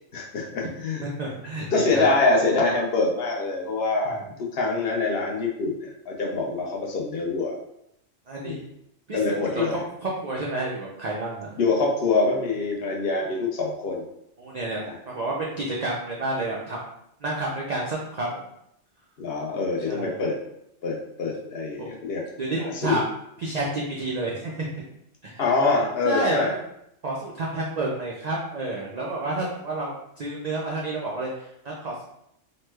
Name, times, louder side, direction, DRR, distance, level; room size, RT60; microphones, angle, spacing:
voice 1, 0.1-1.0 1.7-7.5 8.4-8.7 9.1-9.8 11.6-14.0 14.8-15.0 19.2-20.4 20.8-22.2 22.6-23.0 25.4-26.5, left 3 dB, 60° left, -2 dB, 0.7 m, -25 dB
voice 2, 1.0-2.1 4.0-4.2 8.3-8.6 9.1-11.6 14.4-14.8 15.0-16.9 17.2-18.4 19.9-20.2 21.8-22.0 22.4-23.0 23.4-24.8 25.2-25.3 26.0-26.6 27.0-32.0, right 2 dB, 75° right, -3 dB, 0.3 m, -30 dB
3.1 x 2.1 x 3.2 m, 0.77 s
omnidirectional pair, 1.3 m